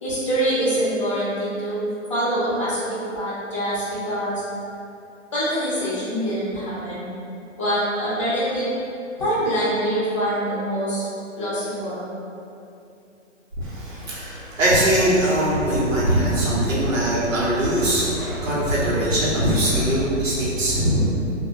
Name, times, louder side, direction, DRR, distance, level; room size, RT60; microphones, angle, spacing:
voice 1, 0.0-1.8 2.1-4.4 5.3-7.1 7.6-8.7 9.2-11.1 11.4-12.1, right 1 dB, 25° left, -10 dB, 0.6 m, -24 dB
voice 2, 13.6-21.1, right 1 dB, 85° right, -8 dB, 0.8 m, -21 dB
2.2 x 2.0 x 3.1 m, 2.7 s
hypercardioid pair, 160°, 38 cm